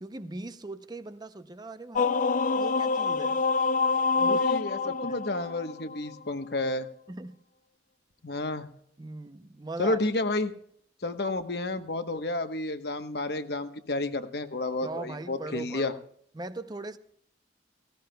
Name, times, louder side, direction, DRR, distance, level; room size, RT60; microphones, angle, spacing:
voice 1, 0.0-2.2 2.5-3.4 4.2-4.4 4.8-5.2 7.1-7.4 9.0-10.0 14.8-16.0 16.3-17.0, right 2 dB, 25° right, 0.6 m, -39 dB
sound 1, 1.9-6.2, left 4 dB, 45° left, 0.4 m, -26 dB
voice 2, 4.2-6.9 8.2-8.7 9.8-10.5 11.0-15.9, left 2 dB, 60° left, 1.1 m, -31 dB
18.0 x 17.0 x 2.3 m
head